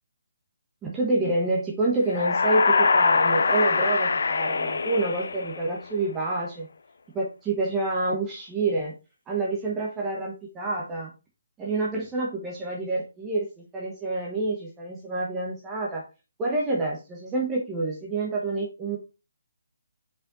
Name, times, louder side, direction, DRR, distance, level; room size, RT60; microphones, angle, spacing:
voice 1, 0.8-6.7 7.1-8.9 9.3-11.1 11.6-16.0 16.4-19.0, right 2 dB, 10° right, -3 dB, 1.2 m, -28 dB
sound 1, 2.1-5.9, left 4 dB, 55° left, 0.5 m, -23 dB
5.2 x 4.9 x 4.1 m, 0.29 s
figure-of-eight pair, 140°, 0 cm